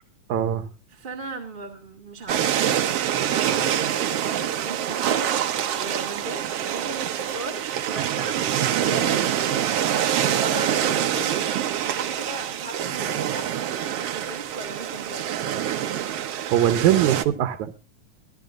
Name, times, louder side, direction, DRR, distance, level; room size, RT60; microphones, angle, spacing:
voice 1, 0.3-0.7 16.1-17.8, right 11 dB, 85° right, 9 dB, 2.3 m, -22 dB
voice 2, 0.9-2.6 3.1-5.3 5.6-9.4 9.9-15.4, right 2 dB, 20° right, 1 dB, 1.6 m, -37 dB
sound 1, 2.3-17.3, right 10 dB, 65° right, 1.8 m, -25 dB
22.5 x 13.0 x 2.5 m, 0.32 s
omnidirectional pair, 3.3 m